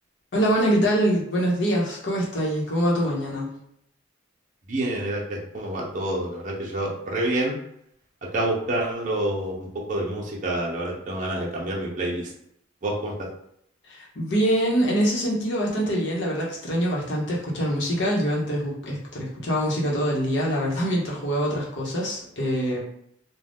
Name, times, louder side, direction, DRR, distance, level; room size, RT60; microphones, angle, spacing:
voice 1, 0.3-3.5 13.8-22.8, equal, 60° left, -4 dB, 0.9 m, -24 dB
voice 2, 4.7-7.6 8.3-12.3 12.8-13.3, right 1 dB, 40° right, -3 dB, 0.6 m, -28 dB
2.6 x 2.2 x 3.5 m, 0.72 s
head